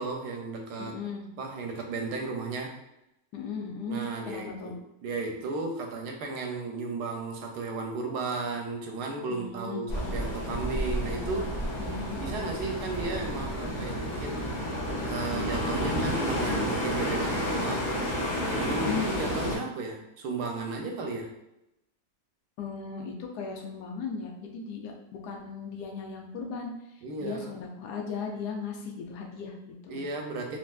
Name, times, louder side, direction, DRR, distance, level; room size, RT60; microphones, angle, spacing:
voice 1, 0.0-1.0 1.4-2.7 3.9-11.5 11.9-14.5 15.0-17.9 18.5-21.3 27.0-27.6 29.9-30.6, right 3 dB, 85° right, 2 dB, 1.2 m, -34 dB
voice 2, 0.8-1.2 3.3-4.7 9.3-9.8 11.8-12.2 18.7-19.1 22.6-26.7 27.2-30.0, left 5 dB, 85° left, 2 dB, 1.2 m, -37 dB
sound 1, 9.9-19.6, equal, 55° left, 0.8 m, -31 dB
3.2 x 2.5 x 2.3 m, 0.88 s
omnidirectional pair, 1.7 m